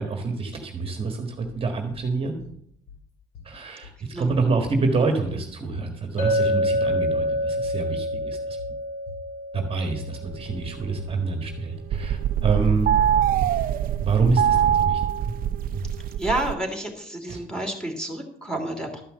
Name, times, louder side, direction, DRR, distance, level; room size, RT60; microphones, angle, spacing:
voice 1, 0.0-2.4 3.4-8.6 9.5-13.0 14.0-15.0 17.3-17.4, right 4 dB, 35° right, 4 dB, 1.5 m, -26 dB
sound 1, 1.4-2.1 2.4-3.0 3.3-4.0 4.3-5.0 5.2-5.9 6.2-6.9 7.2-7.8 8.1-8.8 9.1-9.7 10.0-10.7 11.0-11.6 11.9-12.6 12.9-13.5 13.8-13.9 14.3-14.9 15.2-15.4 15.7-16.2, left 1 dB, 75° left, 2.8 m, -39 dB
Chink clink, 6.2-10.6, equal, 45° left, 3.7 m, -27 dB
sound 2, 10.2-11.5 11.8-16.5, right 10 dB, 60° right, 0.6 m, -23 dB
voice 2, 16.2-19.0, right 1 dB, 5° left, 3 dB, 2.8 m, -29 dB
12.5 x 5.7 x 7.6 m, 0.73 s
cardioid pair, 110°, 17 cm